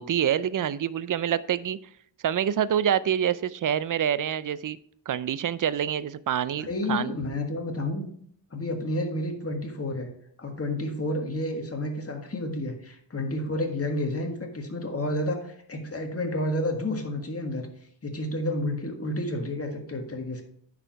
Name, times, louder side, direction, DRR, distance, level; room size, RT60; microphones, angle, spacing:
voice 1, 0.0-1.8 2.2-4.8 5.1-7.2, right 9 dB, 45° right, 17 dB, 0.5 m, -26 dB
voice 2, 6.6-8.1 8.5-17.7 18.0-20.4, left 1 dB, 30° left, 3 dB, 1.7 m, -30 dB
9.9 x 4.9 x 4.6 m, 0.64 s
wide cardioid pair, 90°, 47 cm